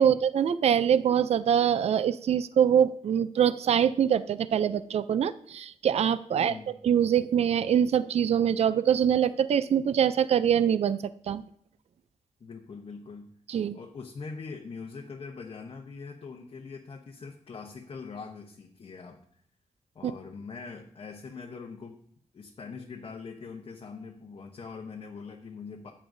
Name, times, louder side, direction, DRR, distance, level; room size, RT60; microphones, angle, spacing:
voice 1, 0.0-6.5 6.8-11.0 11.3-11.4 13.5-13.8 20.0-20.1, right 8 dB, 55° right, 14 dB, 0.4 m, -24 dB
voice 2, 6.4-6.8 12.4-13.3 13.7-19.4 19.9-22.0 22.3-25.9, left 5 dB, 45° left, 1 dB, 0.8 m, -42 dB
14.0 x 8.7 x 2.6 m, 0.64 s
wide cardioid pair, 170°, 13 cm